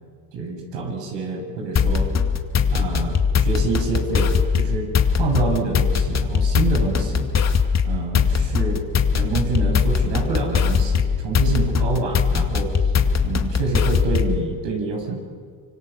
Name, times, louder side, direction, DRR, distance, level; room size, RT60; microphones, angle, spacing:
voice 1, 0.3-2.1 2.7-4.9 5.1-7.3 7.8-8.8 9.1-12.7 13.2-15.2, right 3 dB, 60° right, 2 dB, 7.0 m, -26 dB
sound 1, 1.8-14.4, left 6 dB, 30° left, 2.3 m, -20 dB
25.5 x 25.0 x 7.3 m, 2.1 s
supercardioid pair, 95°, 50 cm